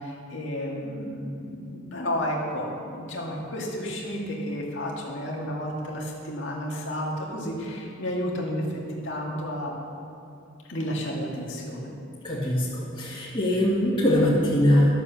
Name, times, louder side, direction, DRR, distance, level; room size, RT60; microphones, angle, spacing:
voice 1, 0.0-9.7 10.7-11.9, equal, 65° left, -2 dB, 2.1 m, -31 dB
voice 2, 12.2-14.9, left 1 dB, 25° left, -9 dB, 2.0 m, -22 dB
11.5 x 7.2 x 7.1 m, 2.7 s
head